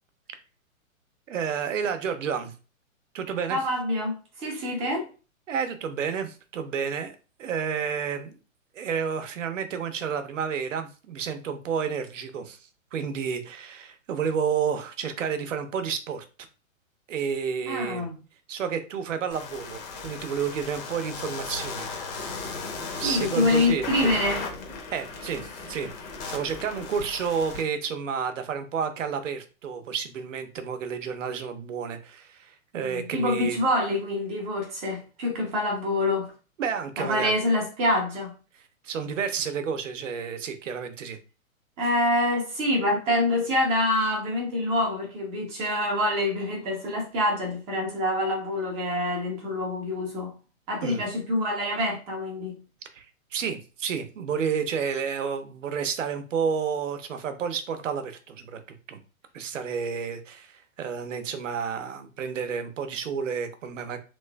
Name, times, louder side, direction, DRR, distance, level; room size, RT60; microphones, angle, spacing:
voice 1, 1.3-2.5 3.1-3.6 4.5-4.7 5.5-7.1 7.4-8.4 8.7-16.2 17.1-18.1 18.5-22.4 22.9-24.1 24.9-25.9 26.3-33.6 36.6-37.3 38.8-41.2 50.8-51.0 52.9-53.1 53.3-58.6 58.9-59.0 59.3-64.0, right 6 dB, 65° right, 0.8 m, -30 dB
voice 2, 3.5-5.1 17.7-18.2 23.0-24.4 32.8-36.3 37.0-38.3 41.8-50.3 50.7-52.5, left 1 dB, 15° right, 0.6 m, -26 dB
sound 1, 19.3-27.6, left 4 dB, 20° left, 0.7 m, -36 dB
3.1 x 3.0 x 2.2 m
hypercardioid pair, 130°, 41 cm